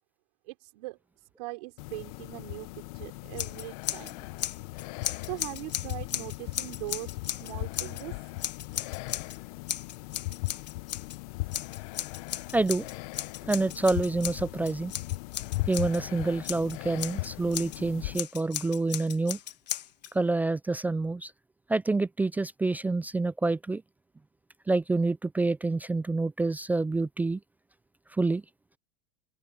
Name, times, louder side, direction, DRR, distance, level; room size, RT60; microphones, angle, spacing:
voice 1, 0.5-1.0 1.4-4.3 5.2-8.2, right 23 dB, 65° right, 3.7 m, -41 dB
sound 1, 1.8-18.2, left 22 dB, 60° left, 0.8 m, -38 dB
Scissors, 3.3-4.1 4.4-8.0 8.4-9.4 9.7-11.2 11.5-16.0 16.4-17.8 18.1-20.1, left 12 dB, 85° left, 2.3 m, -36 dB
voice 2, 12.5-12.9 13.4-14.9 15.7-19.4 20.1-21.3 21.7-23.8 24.7-27.4 28.1-28.4, right 3 dB, 10° right, 0.4 m, -27 dB
hypercardioid pair, 105°, 21 cm